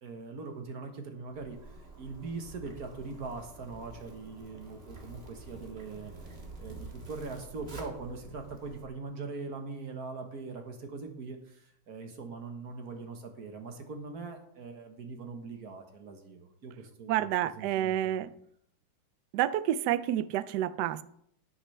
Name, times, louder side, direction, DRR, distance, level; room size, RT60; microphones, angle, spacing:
voice 1, 0.0-18.3, right 4 dB, 50° right, 1.6 m, -42 dB
Zipper (clothing), 1.3-8.8, right 3 dB, 30° right, 1.8 m, -48 dB
voice 2, 17.1-18.3 19.3-21.0, right 12 dB, 80° right, 0.9 m, -29 dB
12.0 x 10.5 x 3.3 m
omnidirectional pair, 2.3 m